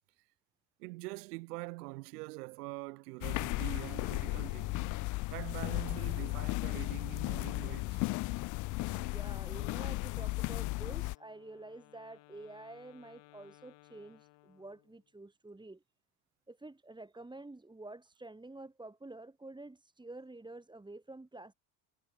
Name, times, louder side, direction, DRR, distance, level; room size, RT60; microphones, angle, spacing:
voice 1, 0.8-5.0 5.3-8.0, right 24 dB, 80° right, 1.3 m, -44 dB
sound 1, 3.2-11.2, left 22 dB, 45° left, 0.4 m, -35 dB
voice 2, 8.9-15.8 16.5-21.5, right 2 dB, 10° right, 3.1 m, -49 dB
Wind instrument woodwind instrument, 11.0-15.1, left 21 dB, 65° left, 7.9 m, -61 dB
supercardioid pair, 90°, 46 cm